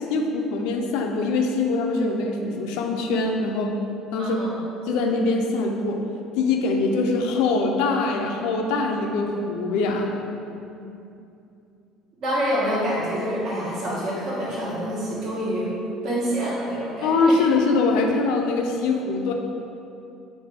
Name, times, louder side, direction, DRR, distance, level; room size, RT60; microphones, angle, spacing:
voice 1, 0.1-3.7 4.1-4.4 4.9-6.0 6.4-10.1 17.0-19.3, left 3 dB, 80° left, 2 dB, 0.4 m, -23 dB
voice 2, 4.2-4.6 12.2-15.7 16.0-17.4, equal, 55° right, -7 dB, 1.3 m, -27 dB
3.3 x 3.0 x 4.3 m, 2.7 s
cardioid pair, 125°, 0 cm